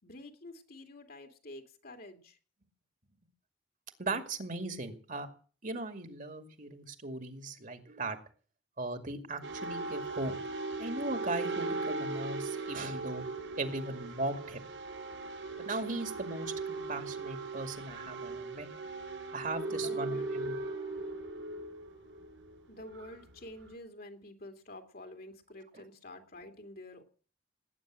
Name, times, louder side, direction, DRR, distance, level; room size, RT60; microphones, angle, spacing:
voice 1, 0.0-2.4 19.7-20.3 22.7-27.0, left 1 dB, 55° left, 5 dB, 2.8 m, -48 dB
voice 2, 4.0-5.3 5.6-8.2 8.8-10.3 10.8-13.2 13.6-14.7 15.6-18.7 19.3-20.5 25.7-25.8, right 2 dB, 45° right, 7 dB, 2.3 m, -38 dB
sound 1, 9.4-23.7, right 3 dB, 80° right, 5.1 m, -38 dB
19.0 x 9.5 x 7.8 m, 0.41 s
head